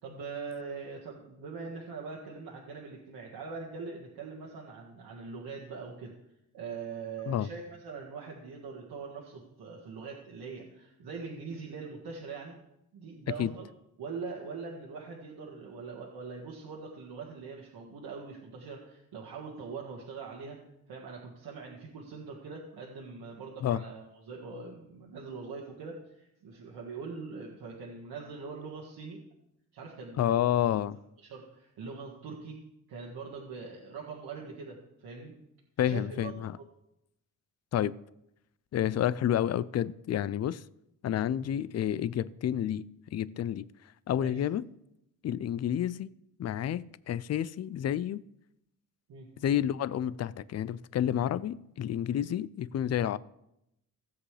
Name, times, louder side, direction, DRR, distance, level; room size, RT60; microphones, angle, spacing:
voice 1, 0.0-6.1 6.5-12.6 12.9-13.7 14.0-20.6 20.9-29.2 29.7-30.5 31.2-32.6 32.9-35.4 35.8-36.3 44.2-44.4 49.1-49.3, right 5 dB, 80° right, 1.8 m, -42 dB
voice 2, 30.2-31.0 35.8-36.6 37.7-37.9 38.7-40.6 41.0-43.7 44.1-44.7 45.2-46.1 46.4-48.2 49.4-53.2, left 10 dB, 45° left, 0.4 m, -30 dB
16.5 x 7.7 x 3.3 m
cardioid pair, 100°, 38 cm